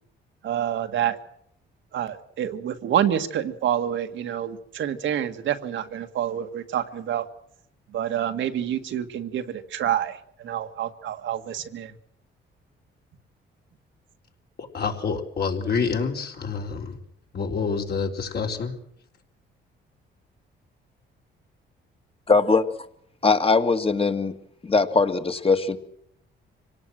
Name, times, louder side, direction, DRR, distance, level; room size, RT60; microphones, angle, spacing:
voice 1, 0.4-1.2 1.9-7.3 7.9-11.9, right 10 dB, 75° right, 7 dB, 1.8 m, -27 dB
voice 2, 14.6-17.0 17.3-18.7, left 5 dB, 55° left, 2 dB, 4.0 m, -27 dB
voice 3, 22.3-22.7 23.2-24.3 24.6-25.8, left 4 dB, 30° left, 8 dB, 2.1 m, -20 dB
25.5 x 18.0 x 7.7 m, 0.71 s
cardioid pair, 90°, 20 cm